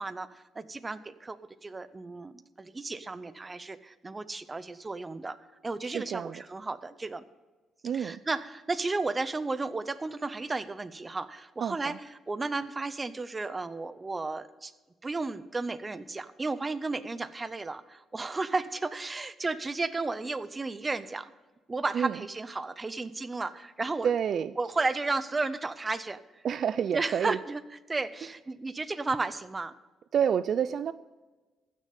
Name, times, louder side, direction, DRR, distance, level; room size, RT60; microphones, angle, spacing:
voice 1, 0.0-5.4 5.6-7.2 7.9-12.0 12.3-14.7 15.0-21.3 21.7-24.1 24.6-26.4 26.9-27.6 27.9-29.8, right 3 dB, 20° right, 14 dB, 0.6 m, -33 dB
voice 2, 5.8-6.4 7.8-8.2 11.6-12.0 21.9-22.2 24.0-24.5 26.4-27.4 30.1-30.9, right 8 dB, 55° right, 15 dB, 0.3 m, -29 dB
15.5 x 6.6 x 5.3 m, 1.2 s
cardioid pair, 110°, 0 cm